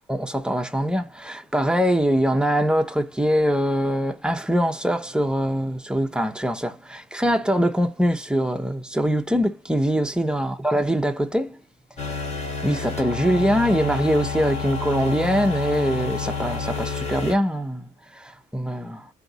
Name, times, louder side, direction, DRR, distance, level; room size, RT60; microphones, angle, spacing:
voice 1, 0.1-11.6 12.6-19.1, equal, 5° right, 0.6 m, -23 dB
sound 1, 12.0-17.3, left 4 dB, 35° left, 1.3 m, -29 dB
3.8 x 2.7 x 3.9 m
cardioid pair, 90°, 20 cm